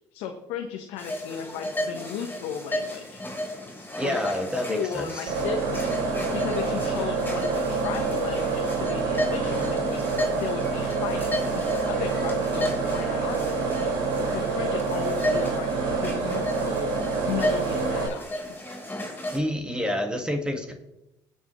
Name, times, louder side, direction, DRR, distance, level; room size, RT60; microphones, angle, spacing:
voice 1, 0.1-3.2 4.0-4.3 4.7-16.9 17.3-18.4, left 7 dB, 85° left, 3 dB, 1.1 m, -35 dB
sound 1, 1.0-19.4, left 1 dB, 20° left, 4.2 m, -34 dB
voice 2, 3.9-5.3 19.3-20.7, equal, 10° right, 3 dB, 1.8 m, -28 dB
sound 2, 5.3-18.1, right 4 dB, 90° right, 4.9 m, -27 dB
17.5 x 7.8 x 3.2 m, 0.86 s
supercardioid pair, 80°, 10 cm